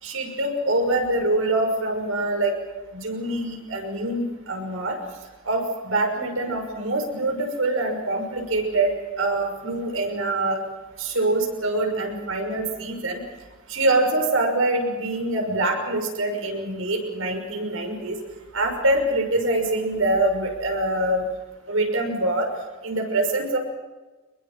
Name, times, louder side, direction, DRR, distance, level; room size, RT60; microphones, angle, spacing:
voice 1, 0.0-2.6 2.9-5.0 5.4-10.6 11.0-13.2 13.7-18.2 18.5-21.3 21.7-22.5 22.8-23.6, right 2 dB, 80° right, 3 dB, 6.0 m, -24 dB
24.0 x 21.5 x 7.5 m, 1.2 s
head